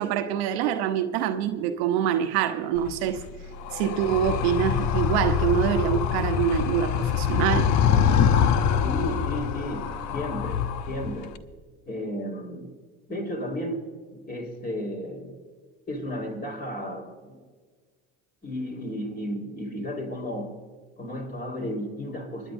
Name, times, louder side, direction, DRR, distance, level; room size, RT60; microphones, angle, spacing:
voice 1, 0.0-3.2 3.7-7.7, right 10 dB, 80° right, 1.0 m, -25 dB
Animal, 2.8-11.4, left 8 dB, 65° left, 0.9 m, -25 dB
voice 2, 8.8-11.3 11.9-12.7 13.1-15.3 15.9-17.4 18.4-20.5 21.0-22.5, equal, 30° left, 4.1 m, -33 dB
26.0 x 11.0 x 2.6 m
hypercardioid pair, 75°, 31 cm